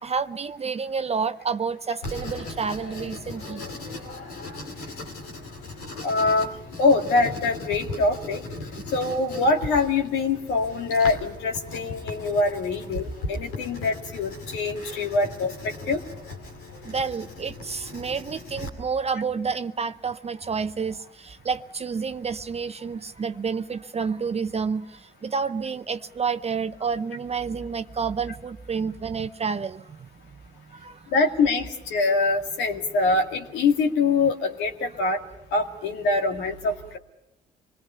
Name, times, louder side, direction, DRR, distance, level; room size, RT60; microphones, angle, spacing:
voice 1, 0.0-3.6 16.9-30.0 30.7-31.1, right 5 dB, 35° right, 11 dB, 0.7 m, -29 dB
Writing, 2.0-18.7, left 2 dB, 90° left, 2.8 m, -38 dB
voice 2, 6.0-6.5 6.8-8.4 8.9-16.0 31.1-35.2 35.5-37.0, left 3 dB, 75° left, 3 dB, 2.2 m, -24 dB
26.0 x 21.0 x 5.7 m, 0.90 s
hypercardioid pair, 50°, 19 cm